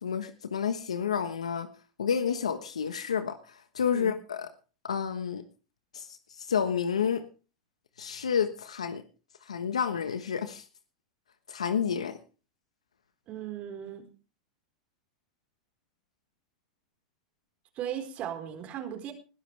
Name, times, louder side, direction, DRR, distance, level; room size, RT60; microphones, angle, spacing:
voice 1, 0.0-1.7 2.0-4.5 4.8-5.4 5.9-6.1 6.4-7.2 8.0-9.0 9.5-10.6 11.5-12.2, left 7 dB, 90° left, 10 dB, 1.3 m, -30 dB
voice 2, 13.3-14.1 17.8-19.1, right 10 dB, 45° right, 4 dB, 4.4 m, -37 dB
20.5 x 12.5 x 3.4 m, 0.35 s
hypercardioid pair, 100°, 3 cm